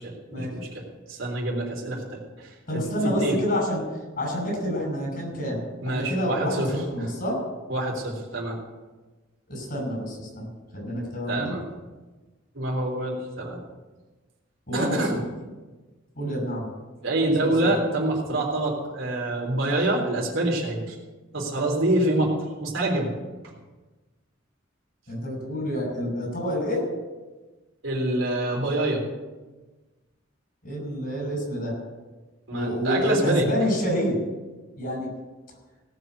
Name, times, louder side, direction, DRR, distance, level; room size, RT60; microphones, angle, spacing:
voice 1, 0.0-2.8 3.2-3.3 5.8-6.7 7.7-8.6 11.3-11.6 12.6-13.6 14.7-15.1 17.0-21.0 21.3-22.3 22.6-23.1 27.8-29.0 32.5-33.4, right 2 dB, 80° right, -2 dB, 3.6 m, -26 dB
voice 2, 2.7-3.8 4.2-7.4 9.5-10.5 10.7-11.6 14.7-15.2 16.1-16.7 17.4-17.7 25.1-26.8 30.6-31.7 32.5-34.2 34.8-35.1, equal, 50° left, 1 dB, 5.9 m, -28 dB
18.0 x 6.1 x 8.1 m, 1.2 s
head